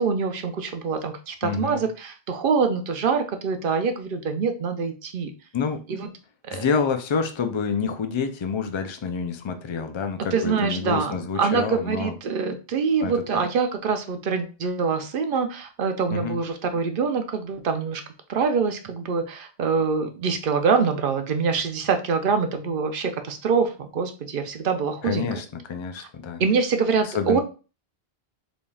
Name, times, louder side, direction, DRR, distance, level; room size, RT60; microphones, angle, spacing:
voice 1, 0.0-5.3 5.9-6.1 6.5-6.6 10.3-18.0 18.3-25.3 26.4-27.4, right 5 dB, 60° right, 0.7 m, -25 dB
voice 2, 1.4-1.9 5.5-5.8 6.5-12.2 13.0-13.4 16.1-16.4 25.0-26.4 27.0-27.4, left 5 dB, 50° left, 0.3 m, -28 dB
4.0 x 3.5 x 2.3 m
omnidirectional pair, 1.1 m